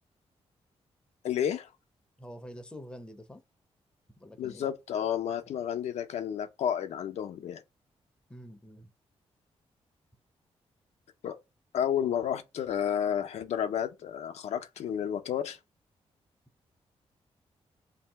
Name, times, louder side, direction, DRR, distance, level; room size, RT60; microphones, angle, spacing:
voice 1, 1.2-1.7 4.4-7.6 11.2-11.4 11.7-15.6, left 9 dB, 80° left, 0.5 m, -31 dB
voice 2, 2.2-3.4 4.2-4.7 8.3-8.9, equal, 10° left, 0.5 m, -46 dB
2.9 x 2.6 x 4.4 m
wide cardioid pair, 140°, 11 cm